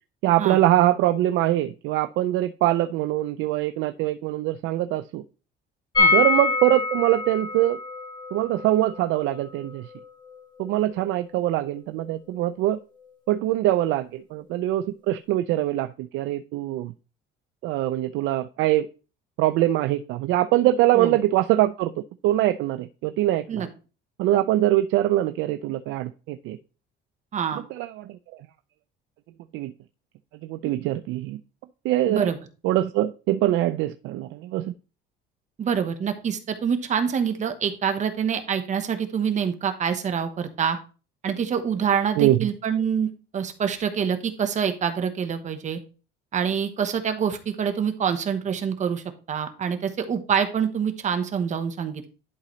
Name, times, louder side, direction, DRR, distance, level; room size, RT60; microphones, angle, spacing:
voice 1, 0.2-5.2 6.1-7.8 8.3-9.9 10.6-12.8 13.3-16.9 17.6-18.9 19.4-21.9 22.2-23.7 24.2-26.6 27.7-28.2 29.5-29.7 30.4-31.4 31.8-32.3 32.6-34.7 42.2-42.5, right 14 dB, 75° right, 0.4 m, -23 dB
sound 1, 5.9-11.7 12.0-12.1 12.3-12.4, left 3 dB, 20° left, 1.7 m, -26 dB
voice 2, 27.3-27.6 32.1-32.4 35.6-40.8 41.2-45.8 46.3-52.1, right 7 dB, 35° right, 1.0 m, -26 dB
11.0 x 3.9 x 3.1 m
cardioid pair, 145°, 20 cm